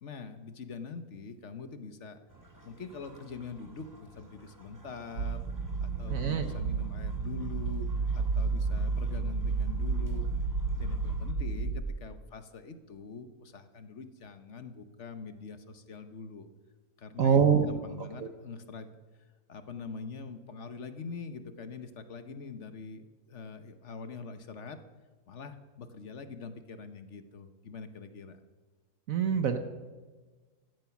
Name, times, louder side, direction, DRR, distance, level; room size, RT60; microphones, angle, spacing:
voice 1, 0.0-2.2 2.6-5.4 5.8-10.3 10.8-16.5 17.0-18.9 19.5-24.8 25.3-28.4, left 5 dB, 50° left, 9 dB, 1.3 m, -44 dB
sound 1, 2.3-11.3, right 1 dB, 10° right, 1.9 m, -55 dB
sound 2, 5.2-11.8, right 4 dB, 80° right, 1.4 m, -31 dB
voice 2, 6.1-6.5 17.2-17.7 18.2-18.3 29.1-29.6, right 7 dB, 60° right, 8 dB, 1.3 m, -25 dB
16.5 x 12.5 x 6.0 m, 1.3 s
omnidirectional pair, 1.6 m